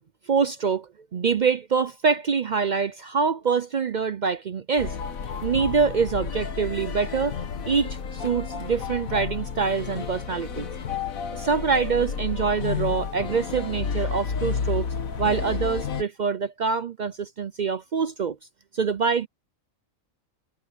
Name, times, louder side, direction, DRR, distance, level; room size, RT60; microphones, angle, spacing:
voice 1, 0.3-5.0 5.4-10.7 11.3-14.9 15.2-18.4 18.7-19.3, right 5 dB, 60° right, 0.5 m, -25 dB
sound 1, 4.8-16.0, left 6 dB, 85° left, 1.7 m, -31 dB
omnidirectional pair, 1.4 m